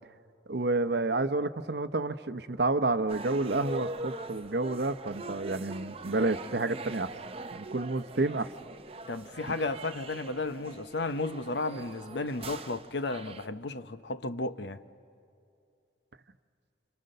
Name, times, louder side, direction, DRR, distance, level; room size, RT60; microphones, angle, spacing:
voice 1, 0.5-7.1 7.5-8.5, right 2 dB, 60° right, 0.8 m, -29 dB
sound 1, 3.1-13.5, right 2 dB, 30° right, 0.7 m, -43 dB
voice 2, 9.1-14.8, left 2 dB, 70° left, 0.9 m, -33 dB
29.5 x 29.0 x 6.7 m
head